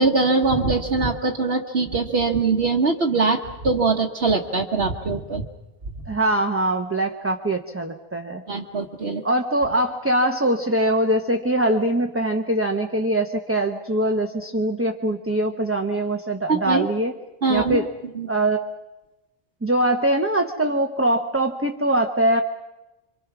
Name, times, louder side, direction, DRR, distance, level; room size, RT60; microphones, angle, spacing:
voice 1, 0.0-5.4 8.5-9.2 16.5-16.9 17.4-17.9 18.1-18.3, right 3 dB, 80° right, -1 dB, 1.5 m, -22 dB
voice 2, 6.1-8.4 9.2-17.1 17.5-17.9 18.3-18.6 19.6-22.4, right 1 dB, 15° right, 4 dB, 1.0 m, -22 dB
27.0 x 25.0 x 6.1 m, 1.0 s
omnidirectional pair, 1.0 m